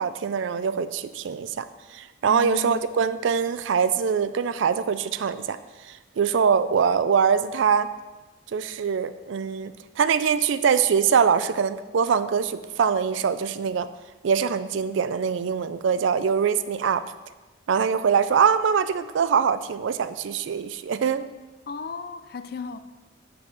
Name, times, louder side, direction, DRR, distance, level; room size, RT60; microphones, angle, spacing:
voice 1, 0.0-1.6 1.9-5.6 5.9-7.9 8.5-13.9 14.2-17.0 17.7-21.3, right 6 dB, 75° right, 13 dB, 0.4 m, -23 dB
voice 2, 2.2-2.8 21.7-22.8, left 5 dB, 50° left, 10 dB, 0.4 m, -35 dB
8.6 x 5.7 x 3.8 m, 1.2 s
head